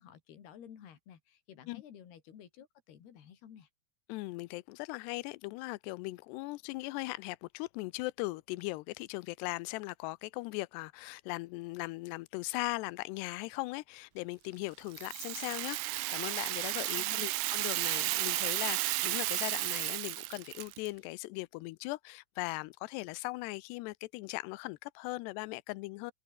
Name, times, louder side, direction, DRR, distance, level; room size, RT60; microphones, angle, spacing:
voice 1, 0.0-3.7 17.0-17.2, left 9 dB, 70° left, 4.9 m, -53 dB
voice 2, 4.1-26.1, left 22 dB, 85° left, 2.7 m, -39 dB
Rattle (instrument), 14.9-20.9, right 23 dB, 90° right, 2.7 m, -33 dB
omnidirectional pair, 4.9 m